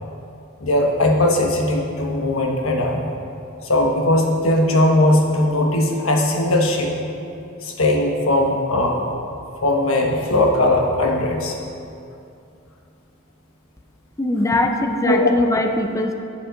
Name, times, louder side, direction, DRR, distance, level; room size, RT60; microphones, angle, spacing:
voice 1, 0.6-3.1 3.6-6.9 7.6-9.1 9.6-11.6 15.0-15.3, left 1 dB, 75° left, 1 dB, 1.2 m, -19 dB
voice 2, 14.2-16.2, left 1 dB, 15° left, 4 dB, 0.5 m, -21 dB
10.0 x 7.6 x 3.9 m, 2.6 s
head